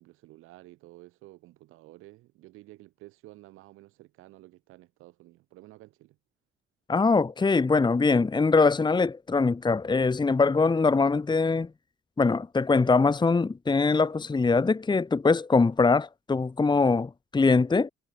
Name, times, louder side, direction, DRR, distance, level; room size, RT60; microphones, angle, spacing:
voice 1, 0.0-6.2, right 18 dB, 90° right, 6.3 m, -52 dB
voice 2, 6.9-11.7 12.2-17.9, left 4 dB, 20° left, 1.0 m, -23 dB
cardioid pair, 75°, 21 cm